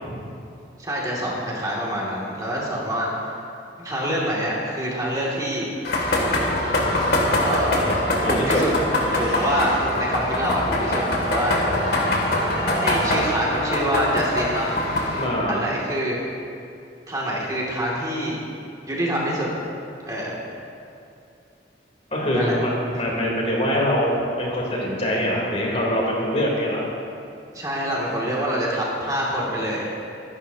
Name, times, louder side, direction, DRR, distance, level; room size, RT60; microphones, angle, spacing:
voice 1, 0.8-3.3 3.8-5.7 7.4-8.7 9.1-11.6 12.2-12.3 12.8-14.7 15.5-16.2 17.1-18.4 18.9-19.5 20.0-20.4 22.3-22.5 27.5-29.9, equal, 20° right, -5 dB, 2.6 m, -26 dB
sound 1, 5.8-15.2, left 1 dB, 65° left, 2.6 m, -23 dB
voice 2, 8.2-8.6 9.0-9.6 15.2-15.6 22.1-26.9, equal, 40° left, -4 dB, 3.6 m, -24 dB
25.0 x 12.5 x 2.9 m, 2.6 s
head